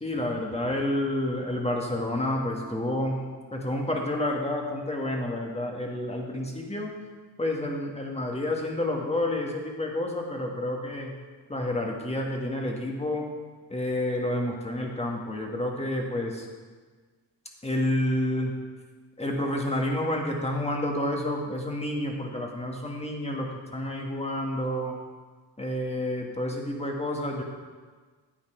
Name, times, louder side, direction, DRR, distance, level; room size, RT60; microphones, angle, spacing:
voice 1, 0.0-3.2 3.5-6.9 7.4-11.1 11.5-13.3 13.7-16.5 17.6-18.6 19.2-25.0 25.6-27.4, left 1 dB, 15° left, 0 dB, 1.7 m, -29 dB
10.5 x 8.8 x 4.6 m, 1.5 s
cardioid pair, 100°, 43 cm